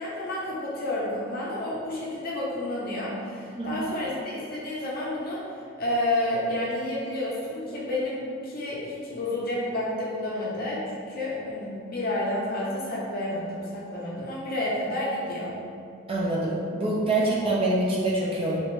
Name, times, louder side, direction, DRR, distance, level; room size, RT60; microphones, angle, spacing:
voice 1, 0.0-5.4 5.8-15.6, left 1 dB, 45° left, -5 dB, 0.7 m, -30 dB
voice 2, 16.1-18.6, right 2 dB, 25° right, -5 dB, 0.4 m, -25 dB
3.2 x 2.5 x 3.1 m, 2.4 s
head